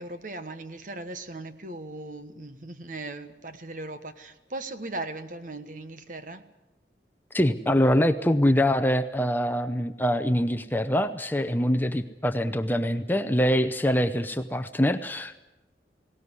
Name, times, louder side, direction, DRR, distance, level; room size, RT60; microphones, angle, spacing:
voice 1, 0.0-6.5, right 2 dB, 45° right, 1.3 m, -38 dB
voice 2, 7.3-15.4, equal, 10° left, 0.7 m, -24 dB
19.0 x 18.0 x 9.7 m
head